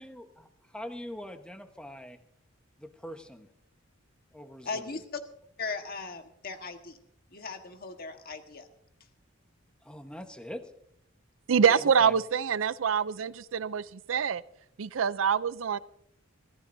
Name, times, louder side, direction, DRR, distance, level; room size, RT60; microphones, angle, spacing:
voice 1, 0.0-2.2 2.8-3.5 4.3-5.0 9.8-10.7 11.8-12.1, equal, 5° left, 6 dB, 1.2 m, -43 dB
voice 2, 4.6-5.2 5.6-7.0 7.3-8.7 11.7-11.8, left 4 dB, 50° left, 6 dB, 1.5 m, -38 dB
voice 3, 11.5-14.4 14.8-15.8, right 7 dB, 75° right, 17 dB, 0.5 m, -25 dB
24.5 x 15.0 x 2.7 m, 0.71 s
head